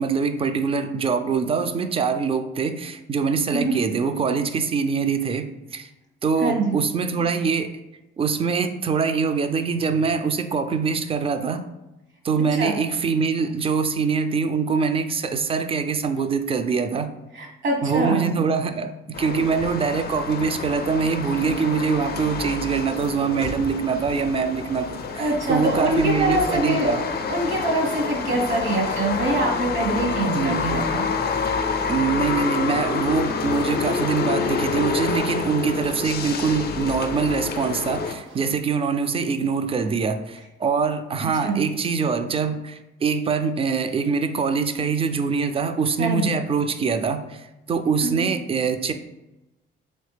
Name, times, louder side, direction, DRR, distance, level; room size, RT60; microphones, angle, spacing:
voice 1, 0.0-5.9 6.2-7.8 8.2-11.6 12.2-17.1 17.8-27.0 30.3-30.6 31.9-48.9, right 5 dB, 30° right, 9 dB, 0.3 m, -24 dB
voice 2, 6.4-6.8 12.5-12.7 17.3-18.3 25.2-26.9 27.3-31.0 41.4-41.6 46.0-46.4 48.0-48.3, right 2 dB, 65° right, 0 dB, 1.2 m, -24 dB
sound 1, 19.1-38.1, left 5 dB, 50° left, 0.4 m, -28 dB
sound 2, 20.5-38.5, right 1 dB, 85° right, 0.9 m, -44 dB
3.2 x 3.2 x 3.3 m, 0.98 s
cardioid pair, 90°, 20 cm